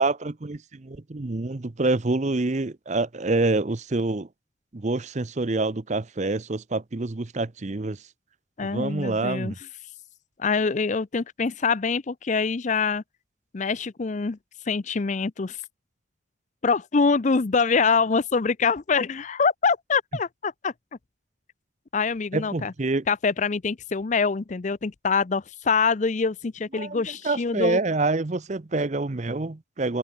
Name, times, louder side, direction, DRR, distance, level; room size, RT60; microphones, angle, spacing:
voice 1, 0.0-4.3 4.7-8.0 8.7-9.6 22.3-23.0 26.7-30.0, right 3 dB, 35° right, 0.7 m, -26 dB
voice 2, 8.6-9.5 10.4-13.0 13.5-14.4 14.7-15.6 16.6-20.7 21.9-22.7 23.1-27.8, left 5 dB, 40° left, 0.5 m, -24 dB
head